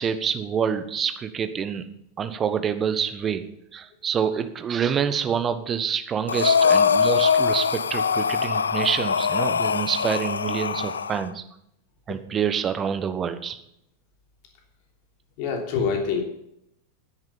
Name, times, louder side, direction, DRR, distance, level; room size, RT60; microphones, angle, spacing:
voice 1, 0.0-1.9 2.2-3.4 3.7-11.4 12.1-13.6, right 7 dB, 25° right, 10 dB, 1.2 m, -27 dB
Breathing, 6.3-11.2, left 6 dB, 70° left, 0.4 m, -22 dB
voice 2, 15.4-16.2, left 6 dB, 45° left, 2 dB, 3.1 m, -25 dB
9.7 x 9.5 x 7.2 m, 0.77 s
figure-of-eight pair, 90°, 0 cm